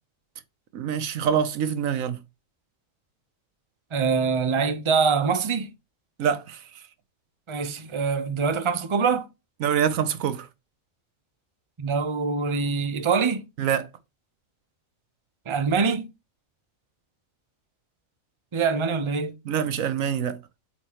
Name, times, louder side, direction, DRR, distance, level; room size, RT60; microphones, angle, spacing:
voice 1, 0.7-2.2 6.2-6.6 9.6-10.5 13.6-13.9 19.5-20.4, right 8 dB, 85° right, 1.2 m, -25 dB
voice 2, 3.9-5.7 7.5-9.3 11.8-13.4 15.5-16.1 18.5-19.3, right 5 dB, 30° right, 0.7 m, -24 dB
8.6 x 4.5 x 2.9 m
omnidirectional pair, 1.4 m